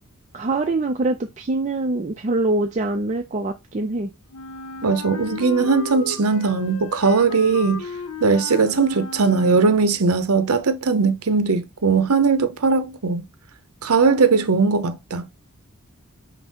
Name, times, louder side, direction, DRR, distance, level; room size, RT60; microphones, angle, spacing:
voice 1, 0.3-4.1, right 2 dB, 30° right, 0.4 m, -24 dB
Wind instrument woodwind instrument, 4.3-10.1, left 2 dB, 80° left, 0.6 m, -35 dB
voice 2, 4.8-7.8 8.2-13.3 13.8-15.2, right 4 dB, 80° right, 0.7 m, -19 dB
5.5 x 2.0 x 4.5 m
head